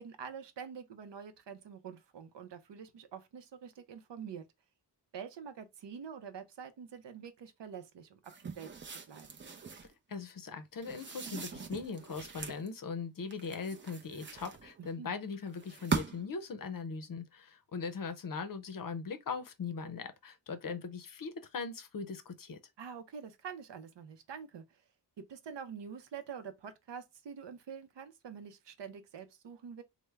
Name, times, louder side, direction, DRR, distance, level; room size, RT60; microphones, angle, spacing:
voice 1, 0.0-4.5 5.1-8.7 9.1-9.4 15.0-15.1 22.8-24.6 25.2-29.8, right 7 dB, 75° right, 0.6 m, -46 dB
sound 1, 8.2-9.9 10.8-12.7 13.3-14.9 15.6-16.4, right 5 dB, 25° right, 0.5 m, -40 dB
voice 2, 10.1-22.6, left 5 dB, 50° left, 0.6 m, -40 dB
3.3 x 2.1 x 3.2 m
wide cardioid pair, 120°, 43 cm